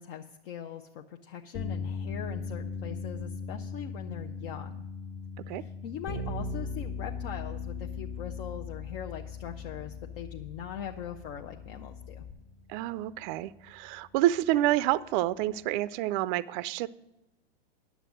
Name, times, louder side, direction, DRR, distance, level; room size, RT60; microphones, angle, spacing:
voice 1, 0.0-4.7 5.5-12.3, left 9 dB, 60° left, 0.8 m, -41 dB
sound 1, 1.5-15.8, left 5 dB, 20° left, 0.6 m, -42 dB
Bass guitar, 6.1-12.3, left 3 dB, 80° left, 1.8 m, -39 dB
voice 2, 12.7-16.9, right 14 dB, 50° right, 0.4 m, -28 dB
10.0 x 7.1 x 7.6 m
hypercardioid pair, 125°, 32 cm